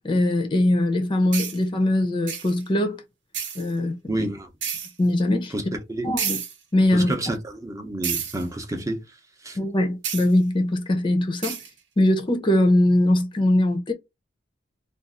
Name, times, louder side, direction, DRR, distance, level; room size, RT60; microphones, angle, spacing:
voice 1, 0.0-3.0 3.5-3.9 5.0-5.5 6.0-6.4 6.7-7.1 9.6-11.6 12.0-13.9, left 1 dB, 25° left, 0.6 m, -21 dB
sound 1, 1.3-1.6 2.3-2.6 3.3-3.7 4.6-4.9 6.2-6.6 8.0-8.4 10.0-10.3 11.4-11.7, right 7 dB, 75° right, 0.9 m, -29 dB
voice 2, 4.1-4.5 5.5-5.6 5.9-6.1 6.9-9.0 9.4-9.6, right 1 dB, 20° right, 0.7 m, -29 dB
2.6 x 2.4 x 3.6 m
head